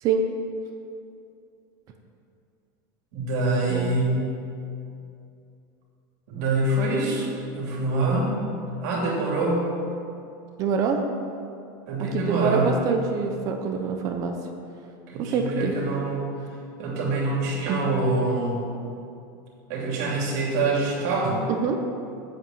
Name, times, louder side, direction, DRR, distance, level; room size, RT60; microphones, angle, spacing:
voice 1, 3.1-4.3 6.3-8.4 8.8-9.7 11.9-12.8 15.1-16.3 16.8-18.8 19.7-21.5, right 2 dB, 60° right, -3 dB, 2.8 m, -25 dB
voice 2, 3.7-4.0 10.6-11.0 12.0-14.4 15.2-15.8 17.7-17.9 21.5-21.8, right 5 dB, 35° right, 4 dB, 0.8 m, -25 dB
8.2 x 7.8 x 7.2 m, 2.5 s
supercardioid pair, 165°, 10 cm